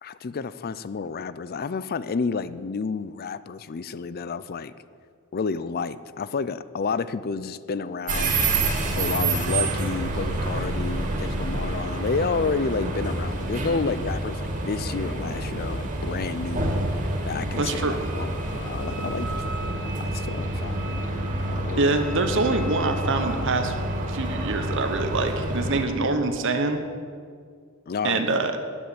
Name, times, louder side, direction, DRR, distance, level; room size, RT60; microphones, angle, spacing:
voice 1, 0.0-4.7 5.3-8.4 8.9-16.7 17.3-21.0 21.4-21.9 27.9-28.2, left 4 dB, 45° left, 16 dB, 0.5 m, -30 dB
sound 1, 8.1-25.8, right 2 dB, 40° right, 2.3 m, -28 dB
voice 2, 17.6-18.0 21.8-23.7 24.1-26.8 28.0-28.5, right 3 dB, 60° right, 7 dB, 1.1 m, -25 dB
10.5 x 9.7 x 8.5 m, 2.1 s
head